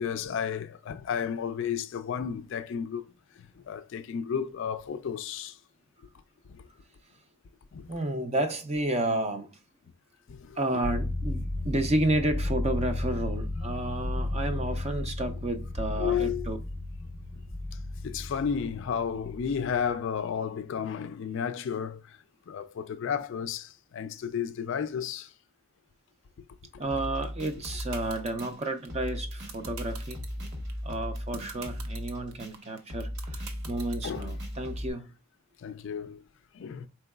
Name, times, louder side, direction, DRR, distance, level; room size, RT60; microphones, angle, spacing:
voice 1, 0.0-3.1 3.6-5.6 6.5-6.6 7.7-7.9 10.3-10.8 16.0-16.5 18.0-22.2 22.5-25.3 30.4-30.5 31.6-31.7 34.0-34.3 35.6-36.2 36.5-36.9, left 7 dB, 55° left, 0.3 m, -32 dB
voice 2, 7.9-9.5 10.6-16.6 26.8-30.2 30.8-35.1, right 1 dB, 30° right, 0.4 m, -31 dB
sound 1, 10.8-20.0, left 2 dB, 25° left, 0.6 m, -33 dB
sound 2, 26.9-34.9, equal, 50° right, 1.1 m, -37 dB
sound 3, 27.2-34.2, right 6 dB, 70° right, 0.7 m, -43 dB
4.4 x 3.9 x 2.2 m
head